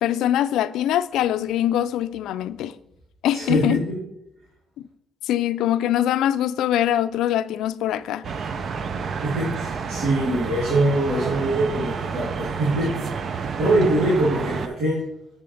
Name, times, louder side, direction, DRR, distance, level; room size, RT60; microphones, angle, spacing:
voice 1, 0.0-2.7 3.2-3.8 5.2-8.3, left 11 dB, 85° left, 0.3 m, -23 dB
voice 2, 3.3-3.8 9.2-15.0, right 1 dB, 90° right, 3.3 m, -23 dB
sound 1, 8.2-14.7, right 5 dB, 55° right, 0.6 m, -30 dB
7.8 x 6.9 x 3.3 m
cardioid pair, 95°, 0 cm